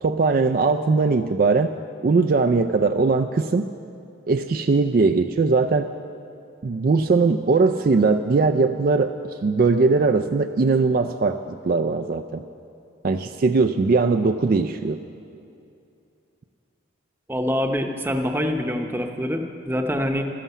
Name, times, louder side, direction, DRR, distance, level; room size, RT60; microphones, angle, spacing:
voice 1, 0.0-1.7 2.0-3.7 4.3-5.9 6.6-12.4 13.0-15.0, right 4 dB, 45° right, 8 dB, 0.3 m, -20 dB
voice 2, 17.3-20.3, equal, 10° right, 4 dB, 0.8 m, -25 dB
12.5 x 11.0 x 7.2 m, 2.6 s
head